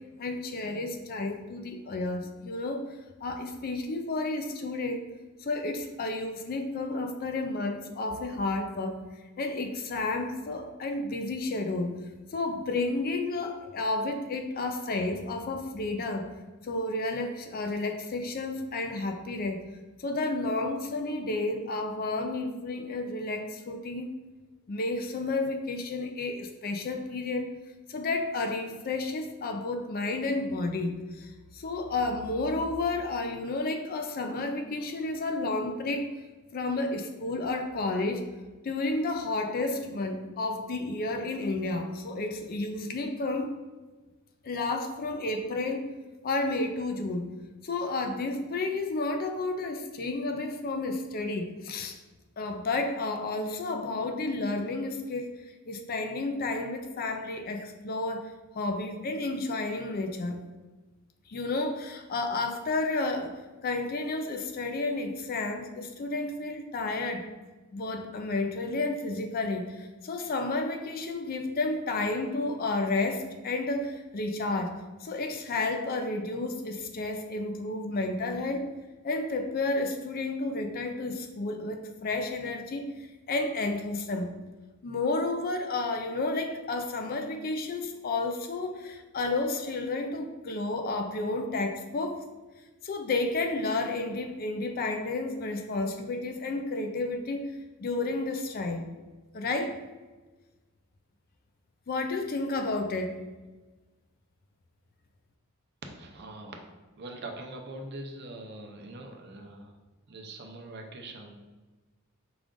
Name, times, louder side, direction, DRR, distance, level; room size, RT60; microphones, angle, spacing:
voice 1, 0.2-2.9 3.2-5.1 5.4-9.0 9.4-12.0 12.3-16.3 16.6-19.7 20.0-24.1 24.7-27.5 27.9-36.1 36.5-38.3 38.6-43.5 44.4-45.9 46.2-47.3 47.6-52.0 52.4-60.4 61.3-63.4 63.6-67.3 67.7-74.7 75.0-78.7 79.0-84.3 84.8-92.2 92.8-97.5 97.8-98.9 99.3-99.8 101.9-103.1, left 2 dB, 45° left, 5 dB, 0.4 m, -31 dB
voice 2, 105.8-106.6 107.0-109.7 110.1-111.3, right 2 dB, 50° right, 3 dB, 0.6 m, -42 dB
5.0 x 2.4 x 3.7 m, 1.2 s
head